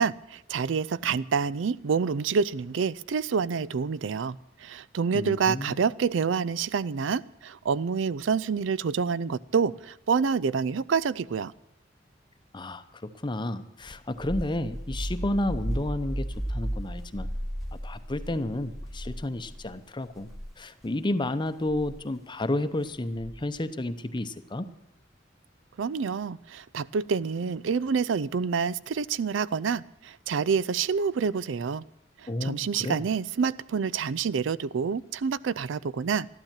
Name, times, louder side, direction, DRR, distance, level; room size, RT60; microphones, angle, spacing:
voice 1, 0.0-11.5 25.8-31.8 32.2-36.3, right 6 dB, 85° right, 0.4 m, -27 dB
voice 2, 5.1-5.8 12.5-17.3 17.8-20.3 20.6-24.7 32.3-33.0, left 1 dB, 25° left, 0.7 m, -31 dB
sound 1, 13.9-19.7 20.2-20.5 21.7-22.0 23.2-23.6, equal, ahead, 1.5 m, -34 dB
13.0 x 12.0 x 7.4 m
head